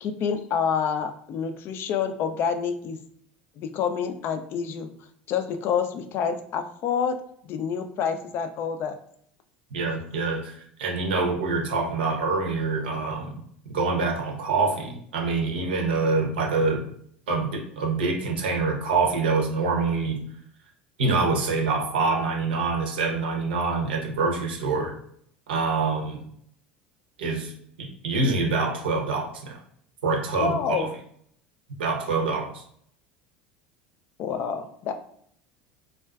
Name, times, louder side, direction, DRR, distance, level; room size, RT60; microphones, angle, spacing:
voice 1, 0.0-3.0 3.6-4.9 5.3-7.2 7.4-9.0 30.4-30.9 34.2-34.9, left 7 dB, 45° left, 8 dB, 0.3 m, -27 dB
voice 2, 9.7-13.4 13.7-16.8 17.3-20.2 21.0-24.9 25.5-26.2 27.2-27.5 27.8-29.6 30.0-30.9 31.8-32.6, right 3 dB, 75° right, 2 dB, 0.6 m, -25 dB
2.4 x 2.2 x 2.3 m, 0.67 s
figure-of-eight pair, 75°, 5 cm